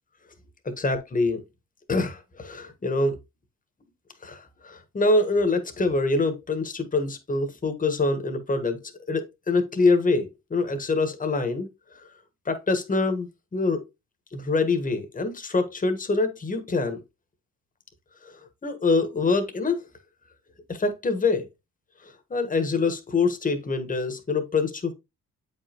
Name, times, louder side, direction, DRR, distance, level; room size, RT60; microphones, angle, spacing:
voice 1, 0.8-1.4 1.9-3.1 4.2-8.8 9.1-11.7 12.5-13.8 14.3-17.0 18.6-19.8 20.8-21.5 22.3-24.9, left 3 dB, 25° left, 1.5 m, -25 dB
8.0 x 5.2 x 3.0 m
cardioid pair, 90°, 30 cm